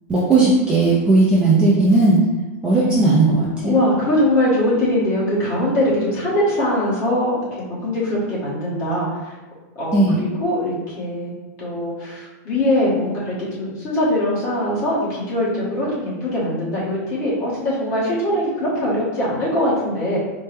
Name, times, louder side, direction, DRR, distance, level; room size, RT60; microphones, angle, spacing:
voice 1, 0.1-2.2 2.6-3.8 9.9-10.2, right 2 dB, 10° right, -7 dB, 0.4 m, -16 dB
voice 2, 2.8-3.3 3.6-9.3 9.7-11.3 11.6-20.2, left 1 dB, 30° left, -7 dB, 1.3 m, -22 dB
4.3 x 2.1 x 3.3 m, 1.1 s
supercardioid pair, 170°, 9 cm